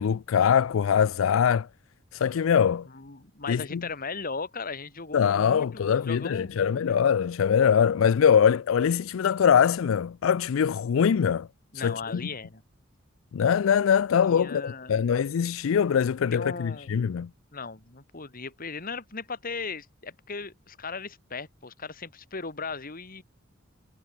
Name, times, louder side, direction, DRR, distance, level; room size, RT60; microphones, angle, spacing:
voice 1, 0.0-1.7 2.1-2.9 3.5-3.8 5.1-11.5 11.8-12.2 13.3-17.3, left 7 dB, 85° left, 0.4 m, -23 dB
voice 2, 2.9-6.8 11.7-12.6 14.3-14.9 16.3-16.9 17.5-23.2, left 4 dB, 45° left, 2.3 m, -37 dB
head